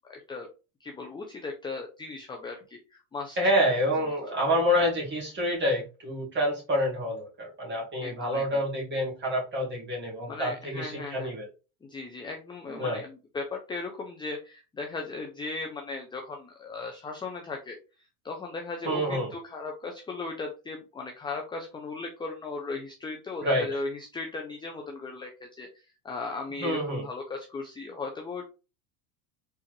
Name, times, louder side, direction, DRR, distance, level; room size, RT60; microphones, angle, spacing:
voice 1, 0.1-0.5 0.8-3.4 8.0-8.6 10.3-11.3 11.8-17.8 18.2-28.4, left 3 dB, 10° left, 2 dB, 0.6 m, -37 dB
voice 2, 3.4-11.5 12.7-13.0 18.8-19.3 23.4-23.8 26.6-27.0, equal, 25° right, -3 dB, 2.1 m, -27 dB
4.4 x 3.4 x 3.1 m, 0.31 s
supercardioid pair, 125°, 43 cm